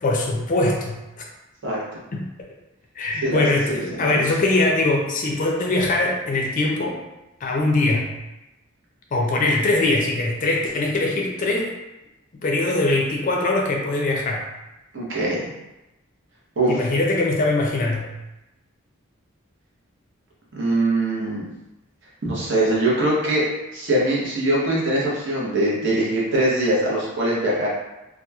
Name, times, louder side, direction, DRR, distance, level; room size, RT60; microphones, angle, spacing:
voice 1, 0.0-1.0 2.1-2.2 3.0-7.0 7.4-8.1 9.1-11.7 12.4-14.5 16.7-18.1, left 2 dB, 40° left, -1 dB, 0.4 m, -22 dB
voice 2, 3.2-4.2 14.9-15.5 16.6-16.8 20.5-21.4 22.2-23.4 23.7-27.7, right 1 dB, 60° right, -5 dB, 0.8 m, -22 dB
2.8 x 2.3 x 2.3 m, 0.98 s
head